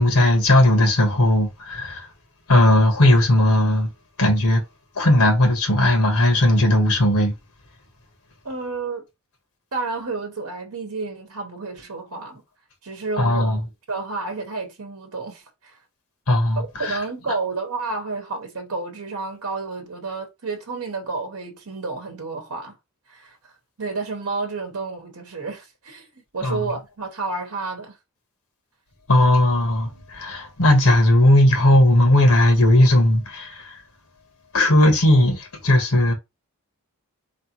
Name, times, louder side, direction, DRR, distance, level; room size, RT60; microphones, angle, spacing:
voice 1, 0.0-2.1 2.5-3.9 4.2-4.6 5.0-7.3 13.2-13.6 16.3-17.4 26.4-26.8 29.1-33.8 34.5-36.1, left 1 dB, 80° left, 1.3 m, -17 dB
voice 2, 8.4-9.0 9.7-12.4 12.8-13.5 13.9-15.8 16.6-22.8 23.1-23.4 23.8-28.0, right 3 dB, 70° right, 1.0 m, -30 dB
4.0 x 3.3 x 2.9 m
head